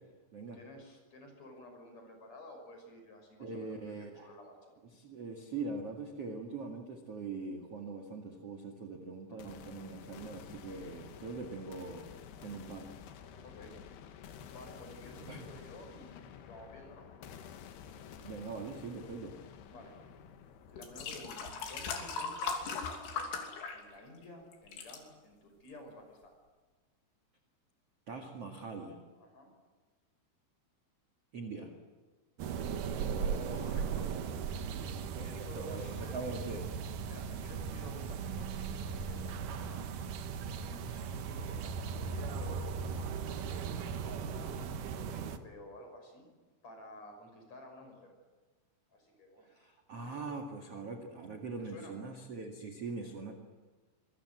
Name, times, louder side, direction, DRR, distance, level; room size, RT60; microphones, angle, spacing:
voice 1, 0.5-4.7 9.3-9.5 13.4-13.8 14.5-17.1 19.7-20.0 20.7-26.3 29.2-29.5 33.2-34.1 34.7-36.1 37.1-39.9 40.5-43.4 43.9-46.3 46.6-48.1 48.9-49.5 50.0-50.3 51.6-52.0, left 1 dB, 35° left, 4 dB, 6.7 m, -52 dB
voice 2, 3.4-4.3 4.9-12.1 12.4-12.9 15.3-15.5 18.2-19.4 28.1-29.0 31.3-31.7 35.1-36.8 49.4-53.3, right 3 dB, 45° right, 2 dB, 2.2 m, -42 dB
sound 1, 9.4-23.3, left 8 dB, 65° left, 3.2 m, -51 dB
sound 2, 20.1-20.2 20.8-24.2 24.5-25.0 25.7-25.8, left 5 dB, 90° left, 5.5 m, -38 dB
sound 3, 32.4-45.4, right 6 dB, 70° right, 2.0 m, -38 dB
26.0 x 23.0 x 7.9 m, 1.3 s
omnidirectional pair, 5.6 m